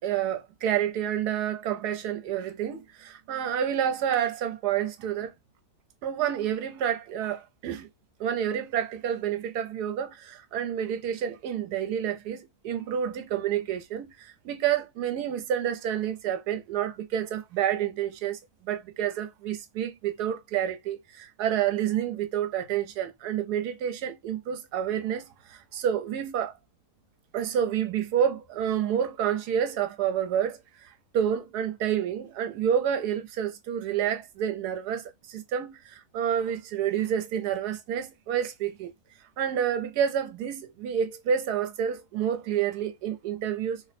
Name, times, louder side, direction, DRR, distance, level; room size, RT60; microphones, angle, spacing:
voice 1, 0.0-5.3 6.0-7.9 8.2-18.4 18.6-26.6 27.3-38.9 39.4-43.8, right 9 dB, 80° right, 1.2 m, -29 dB
3.0 x 2.0 x 4.1 m
omnidirectional pair, 1.7 m